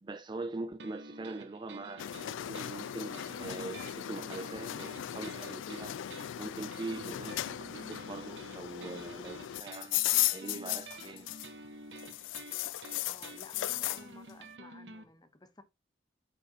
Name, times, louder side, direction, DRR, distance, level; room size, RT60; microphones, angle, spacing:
voice 1, 0.0-2.1 2.4-6.0 6.4-10.0 10.3-11.3, right 2 dB, 25° right, 0.4 m, -42 dB
sound 1, 0.8-15.0, right 2 dB, 70° right, 1.1 m, -50 dB
sound 2, 2.0-11.7 12.0-14.0, left 14 dB, 90° left, 0.3 m, -36 dB
voice 2, 12.9-15.6, left 2 dB, 20° left, 0.8 m, -55 dB
7.9 x 5.3 x 2.8 m
head